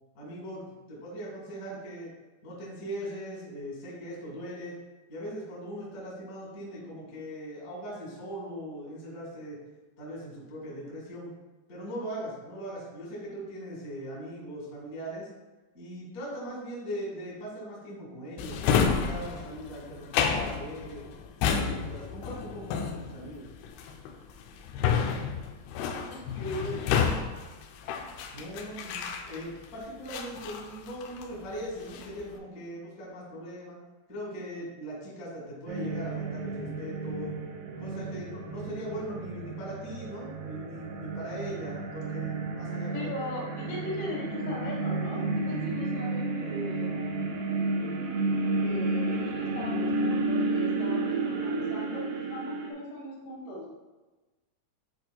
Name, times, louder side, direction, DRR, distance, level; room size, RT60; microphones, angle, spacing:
voice 1, 0.1-0.6 0.9-2.1 2.4-4.7 5.1-9.6 10.0-11.3 11.7-15.3 15.7-21.0 21.4-23.4 28.3-29.0 29.2-33.7 34.1-37.3 37.8-43.1 43.6-43.7, equal, 40° left, -6 dB, 1.2 m, -40 dB
Drawer open or close, 18.4-29.7 30.1-31.4 31.7-32.2, left 6 dB, 90° left, 2.3 m, -30 dB
voice 2, 25.8-27.2 42.9-46.9 48.6-53.7, left 1 dB, 75° left, -4 dB, 3.4 m, -39 dB
sound 1, 35.7-52.7, right 3 dB, 80° right, 2.3 m, -32 dB
10.5 x 4.0 x 2.3 m, 1.2 s
omnidirectional pair, 5.2 m